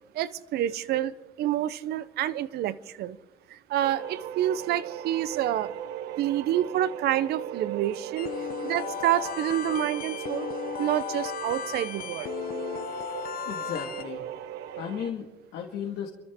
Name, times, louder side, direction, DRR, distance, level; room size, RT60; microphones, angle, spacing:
voice 1, 0.1-3.2 3.5-5.7 6.2-8.3 8.6-10.5 10.8-12.3, right 12 dB, 70° right, 16 dB, 0.8 m, -28 dB
sound 1, 3.8-15.1, right 11 dB, 90° right, 1.0 m, -38 dB
sound 2, 8.2-14.0, left 9 dB, 60° left, 1.0 m, -35 dB
voice 2, 13.5-14.3 14.8-16.1, left 8 dB, 80° left, 0 dB, 2.0 m, -35 dB
29.0 x 13.0 x 3.7 m, 1.2 s
cardioid pair, 110°, 17 cm